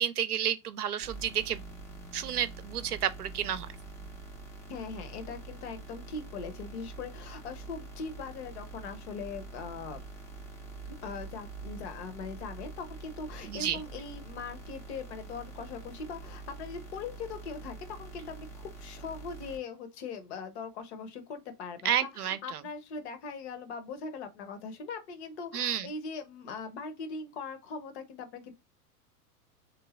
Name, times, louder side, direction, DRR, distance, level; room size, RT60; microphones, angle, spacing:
voice 1, 0.0-1.6 2.1-3.7 13.4-13.8 21.8-22.6 25.5-25.9, right 10 dB, 70° right, 0.7 m, -31 dB
sound 1, 1.0-19.6, right 3 dB, 5° left, 0.6 m, -45 dB
voice 2, 4.7-10.0 11.0-28.5, left 4 dB, 45° left, 1.0 m, -41 dB
3.6 x 2.8 x 4.0 m
figure-of-eight pair, 100°, 47 cm